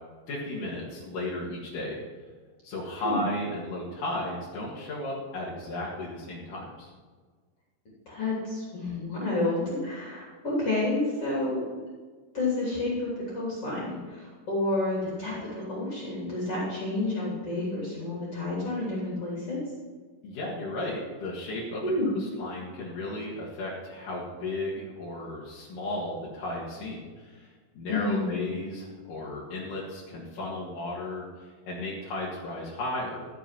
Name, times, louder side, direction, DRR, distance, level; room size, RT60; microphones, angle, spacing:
voice 1, 0.3-2.0 2.6-6.9 20.2-21.8 22.1-33.3, left 1 dB, 60° left, -6 dB, 3.1 m, -34 dB
voice 2, 8.1-11.7 12.3-19.6 21.8-22.1 27.9-28.4, left 2 dB, 35° left, -6 dB, 3.7 m, -30 dB
14.0 x 7.0 x 6.0 m, 1.5 s
omnidirectional pair, 4.7 m